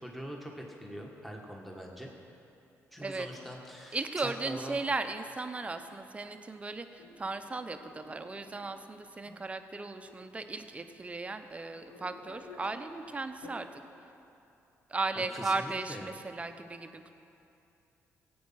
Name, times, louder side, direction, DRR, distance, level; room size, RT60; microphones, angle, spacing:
voice 1, 0.0-2.1 2.9-4.8 15.3-16.1, equal, ahead, -1 dB, 1.5 m, -43 dB
voice 2, 3.9-13.8 14.9-17.1, right 3 dB, 25° right, 8 dB, 0.8 m, -36 dB
sound 1, 7.0-9.4 10.0-10.3 11.0-11.1 11.6-13.0 13.3-13.6, left 3 dB, 90° left, 1.6 m, -52 dB
16.0 x 8.6 x 5.8 m, 2.8 s
cardioid pair, 95°, 6 cm